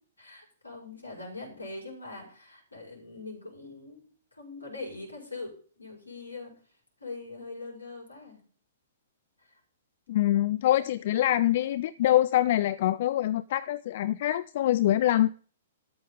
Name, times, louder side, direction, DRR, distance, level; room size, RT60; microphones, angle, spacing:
voice 1, 0.2-4.0 4.3-6.5 7.0-8.4 9.4-9.6, left 3 dB, 80° left, -1 dB, 5.9 m, -42 dB
voice 2, 10.1-15.3, left 13 dB, 50° left, 16 dB, 0.4 m, -24 dB
13.5 x 9.2 x 4.0 m, 0.42 s
figure-of-eight pair, 110°, 0 cm